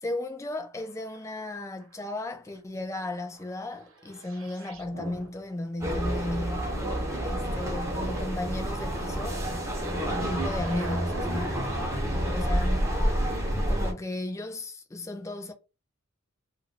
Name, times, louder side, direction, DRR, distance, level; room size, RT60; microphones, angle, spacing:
voice 1, 0.0-6.8 7.2-9.4 10.1-11.7 12.1-13.0 13.7-15.5, left 2 dB, 15° left, 0.3 m, -35 dB
sound 1, 0.7-2.2 2.5-5.9 6.6-12.4 13.7-13.8, right 2 dB, 70° right, 0.8 m, -44 dB
sound 2, 5.8-13.9, equal, 15° right, 0.7 m, -29 dB
2.3 x 2.2 x 3.7 m
head